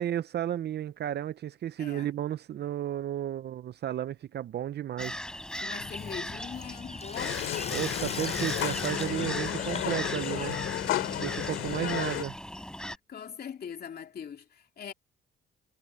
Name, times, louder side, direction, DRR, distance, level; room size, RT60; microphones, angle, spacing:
voice 1, 0.0-5.2 7.7-10.6 10.9-12.3, right 11 dB, 55° right, 0.6 m, -33 dB
voice 2, 1.8-2.1 5.6-7.5 11.8-12.0 12.9-14.9, left 8 dB, 50° left, 3.1 m, -42 dB
sound 1, 5.0-13.0, equal, 5° left, 3.9 m, -38 dB
Sink (filling or washing), 5.8-12.6, left 4 dB, 35° left, 4.6 m, -41 dB
sound 2, 7.1-12.2, left 14 dB, 90° left, 2.5 m, -33 dB
cardioid pair, 90°, 20 cm